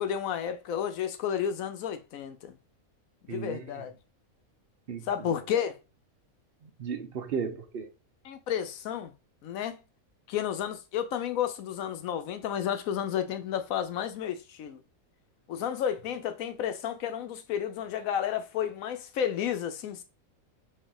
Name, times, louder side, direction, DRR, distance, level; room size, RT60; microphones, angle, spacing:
voice 1, 0.0-2.6 3.3-3.9 5.1-5.8 8.2-9.1 9.4-9.8 10.3-14.8 15.5-20.0, left 9 dB, 75° left, 1.0 m, -32 dB
voice 2, 3.3-3.8 4.9-5.4 6.6-7.9, right 6 dB, 55° right, 0.7 m, -36 dB
4.3 x 2.7 x 3.8 m
omnidirectional pair, 1.5 m